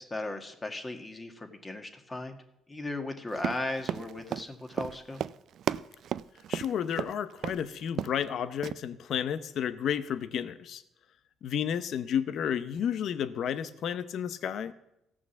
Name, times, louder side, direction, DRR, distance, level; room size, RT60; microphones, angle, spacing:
voice 1, 0.0-2.4 2.7-5.2, left 2 dB, 20° left, 5 dB, 1.8 m, -37 dB
Run, 3.3-7.1 7.4-7.6 7.9-8.3 8.6-8.7, right 10 dB, 65° right, 0.4 m, -34 dB
voice 2, 6.5-10.8 11.4-14.7, left 8 dB, 65° left, 13 dB, 0.7 m, -32 dB
15.5 x 6.1 x 7.1 m, 0.84 s
cardioid pair, 85°, 0 cm